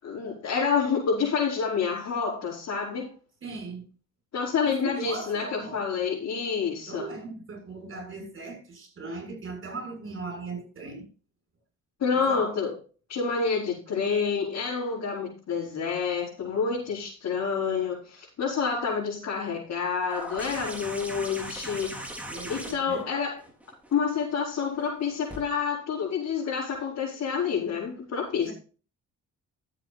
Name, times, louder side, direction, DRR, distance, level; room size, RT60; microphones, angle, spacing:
voice 1, 0.0-3.1 4.3-7.1 12.0-12.7 13.1-22.1 22.5-23.3 23.9-28.5, left 6 dB, 60° left, 4.9 m, -28 dB
voice 2, 3.4-3.9 4.8-5.8 6.9-11.1 12.3-12.5 22.3-23.1 28.5-28.6, right 3 dB, 45° right, 7.1 m, -38 dB
sound 1, 20.1-25.4 26.7-26.8, right 1 dB, 5° right, 3.7 m, -40 dB
12.5 x 8.1 x 4.3 m
cardioid pair, 90°, 30 cm